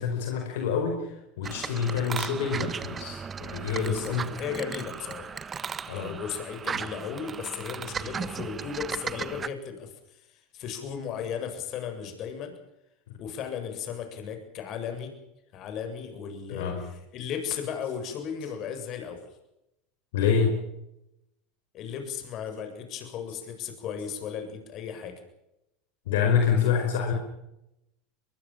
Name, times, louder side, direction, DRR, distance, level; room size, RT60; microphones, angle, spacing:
voice 1, 0.0-4.2 5.9-6.2 16.5-16.8 20.1-20.6 26.0-27.1, left 6 dB, 75° left, 3 dB, 5.0 m, -27 dB
sound 1, 1.4-9.5, right 6 dB, 25° right, 1.3 m, -36 dB
voice 2, 3.8-5.4 5.9-12.5 13.2-15.1 15.5-19.2 21.7-25.2, left 7 dB, 50° left, 6 dB, 7.5 m, -36 dB
23.0 x 22.5 x 7.4 m, 0.88 s
hypercardioid pair, 95°, 0 cm